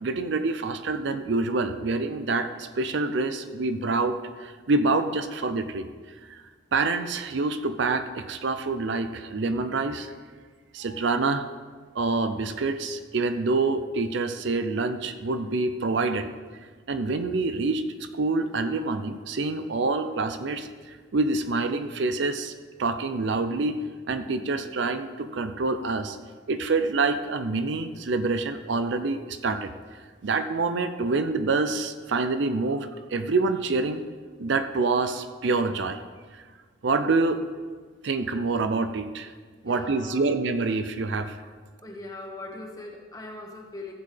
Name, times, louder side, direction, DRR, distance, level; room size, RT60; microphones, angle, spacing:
voice 1, 0.0-5.9 6.3-6.4 6.7-10.1 10.7-11.5 11.9-16.3 16.9-22.5 22.8-23.8 24.1-26.2 26.5-29.7 30.2-34.0 34.4-36.0 36.3-36.4 36.8-37.4 38.0-39.3 39.6-41.4, right 3 dB, 60° right, 9 dB, 0.5 m, -26 dB
voice 2, 39.6-40.3 41.8-43.9, left 2 dB, 20° left, 1 dB, 1.2 m, -40 dB
14.5 x 7.6 x 3.4 m, 1.5 s
head